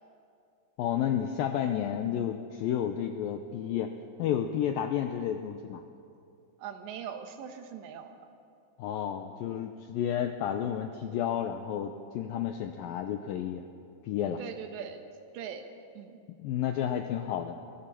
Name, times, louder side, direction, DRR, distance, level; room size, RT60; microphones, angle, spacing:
voice 1, 0.8-3.9 4.2-5.8 8.8-13.7 14.0-14.4 16.4-17.6, left 9 dB, 90° left, 6 dB, 2.0 m, -31 dB
voice 2, 6.6-8.3 14.4-15.0 15.3-15.7 16.0-16.2, right 8 dB, 85° right, 6 dB, 3.5 m, -41 dB
21.5 x 16.0 x 7.5 m, 2.5 s
omnidirectional pair, 5.0 m